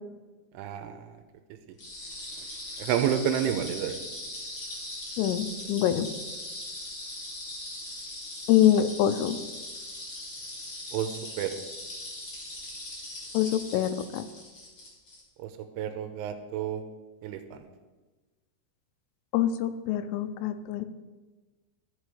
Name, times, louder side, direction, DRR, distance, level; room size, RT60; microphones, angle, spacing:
voice 1, 0.5-1.2 2.4-2.5 2.8-4.0 10.9-11.5 15.4-15.5 15.8-16.8 17.2-17.7, right 9 dB, 85° right, 8 dB, 3.1 m, -30 dB
sound 1, 1.8-15.2, left 1 dB, 35° left, 2.6 m, -40 dB
voice 2, 5.2-6.1 8.5-9.4 13.3-14.2 19.3-20.9, left 11 dB, 90° left, 11 dB, 3.3 m, -25 dB
13.5 x 6.9 x 4.8 m, 1.3 s
omnidirectional pair, 5.7 m